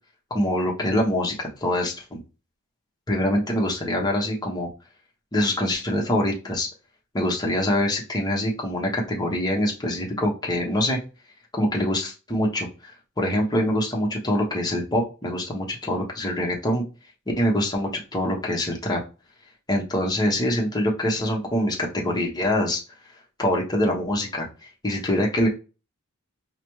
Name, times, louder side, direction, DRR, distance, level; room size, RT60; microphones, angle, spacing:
voice 1, 0.3-2.2 3.1-4.7 5.3-6.7 7.1-11.0 11.5-12.9 13.2-16.8 17.4-19.0 19.7-22.8 23.4-24.5 24.8-25.5, left 1 dB, 20° left, -1 dB, 0.9 m, -24 dB
4.9 x 2.2 x 3.0 m, 0.33 s
head